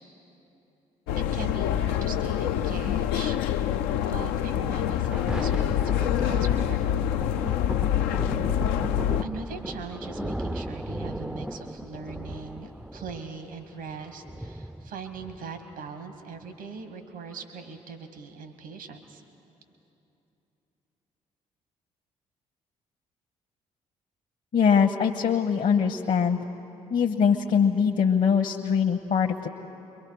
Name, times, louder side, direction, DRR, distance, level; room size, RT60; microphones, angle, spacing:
sound 1, 1.1-9.2, left 10 dB, 75° left, 0.5 m, -26 dB
voice 1, 1.1-3.8 4.1-7.0 9.2-19.2, right 5 dB, 85° right, 7 dB, 1.5 m, -40 dB
Thunder, 4.8-15.8 16.4-16.5, right 1 dB, 5° right, 0.4 m, -37 dB
voice 2, 24.5-26.4 26.9-29.5, left 6 dB, 50° left, 2 dB, 1.0 m, -22 dB
29.5 x 23.0 x 4.8 m, 2.9 s
hypercardioid pair, 45°, 16 cm